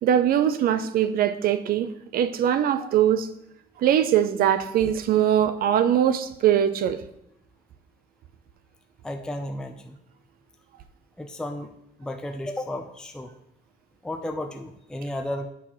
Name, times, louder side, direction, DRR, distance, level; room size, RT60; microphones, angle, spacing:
voice 1, 0.0-3.3 3.8-7.0, right 10 dB, 60° right, 0.6 m, -22 dB
voice 2, 9.0-10.0 11.2-11.7 12.0-13.3 14.0-15.5, left 1 dB, 5° left, 0.5 m, -33 dB
8.3 x 5.7 x 3.1 m
cardioid pair, 110°, 17 cm